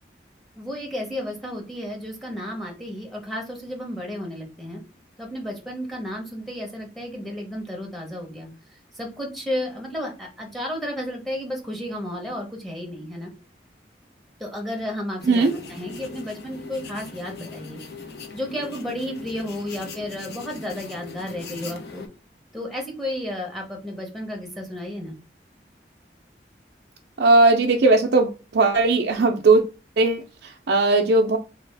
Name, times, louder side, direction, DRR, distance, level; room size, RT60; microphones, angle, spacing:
voice 1, 0.6-4.8 5.2-8.5 8.9-13.3 14.4-17.8 18.3-22.0 22.5-25.2, left 1 dB, ahead, 0 dB, 0.9 m, -32 dB
sound 1, 15.2-22.1, left 4 dB, 70° left, 0.6 m, -40 dB
voice 2, 27.2-29.6 30.0-31.4, right 3 dB, 75° right, 1 dB, 0.4 m, -18 dB
3.4 x 2.3 x 3.3 m, 0.32 s
head